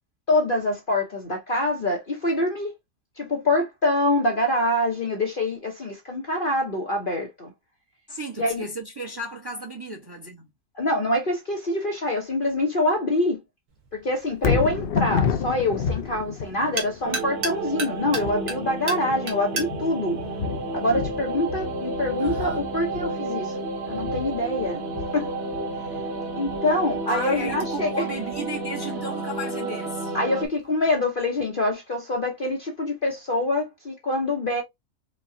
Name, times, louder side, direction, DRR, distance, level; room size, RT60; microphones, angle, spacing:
voice 1, 0.3-2.7 3.2-7.5 8.4-8.7 10.7-13.4 13.9-20.2 20.7-24.8 25.1-25.3 26.3-28.1 30.1-34.6, left 1 dB, 40° left, 0.9 m, -25 dB
voice 2, 8.1-10.5 22.2-22.7 27.1-30.1, equal, 20° right, 0.9 m, -34 dB
sound 1, 13.7-21.3, right 3 dB, 70° right, 1.7 m, -36 dB
Thunder, 14.3-28.5 29.0-29.1, left 6 dB, 75° left, 0.5 m, -31 dB
sound 2, 17.0-30.5, right 2 dB, 50° right, 1.0 m, -31 dB
5.1 x 2.3 x 2.6 m
omnidirectional pair, 1.7 m